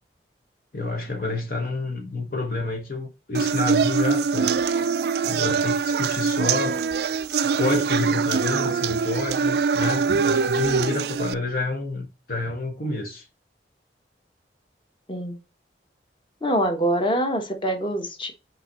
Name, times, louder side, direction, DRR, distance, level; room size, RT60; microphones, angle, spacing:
voice 1, 0.7-4.6 5.2-6.8 7.3-13.3, left 2 dB, 50° left, 1.0 m, -29 dB
sound 1, 3.3-11.3, right 5 dB, 60° right, 0.3 m, -23 dB
voice 2, 16.4-18.3, equal, 25° left, 1.2 m, -24 dB
5.5 x 4.6 x 4.0 m
head